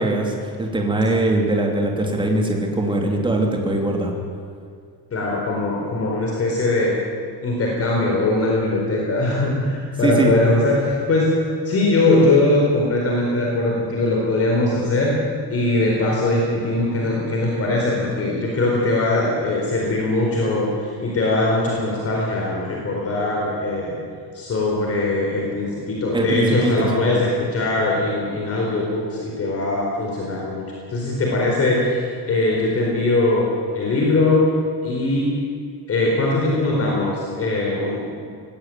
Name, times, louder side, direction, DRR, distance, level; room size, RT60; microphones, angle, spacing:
voice 1, 0.0-4.1 10.0-10.3 26.1-27.2, right 2 dB, 10° right, 1 dB, 2.9 m, -21 dB
voice 2, 5.1-7.0 7.4-11.3 11.6-15.1 15.5-23.9 24.3-30.6 30.9-33.5 33.7-34.4 34.8-35.3 35.9-38.1, left 2 dB, 35° left, -2 dB, 4.3 m, -21 dB
19.0 x 17.0 x 9.2 m, 2.2 s
cardioid pair, 160°, 39 cm